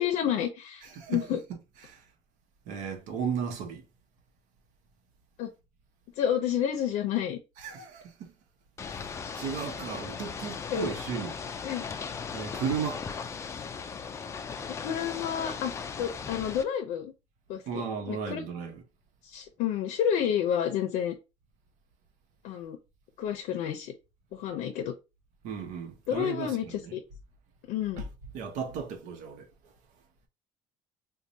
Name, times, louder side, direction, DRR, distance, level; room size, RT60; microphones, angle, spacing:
voice 1, 0.0-1.4 5.4-5.5 6.2-7.4 10.7-11.0 11.6-11.8 14.8-17.1 17.5-18.4 19.2-21.1 22.4-22.8 23.2-23.9 24.3-24.9 26.1-27.0 27.7-28.1, left 9 dB, 75° left, 0.7 m, -30 dB
voice 2, 0.9-1.2 1.8-2.0 2.7-3.8 7.6-8.3 8.9-11.4 12.3-13.0 17.7-18.8 25.4-26.9 28.0-28.1 28.3-29.5, right 6 dB, 80° right, 1.0 m, -35 dB
Ocean / Boat Water vehicle, 8.8-16.6, left 6 dB, 25° left, 0.4 m, -37 dB
4.6 x 2.3 x 2.7 m
cardioid pair, 155°, 12 cm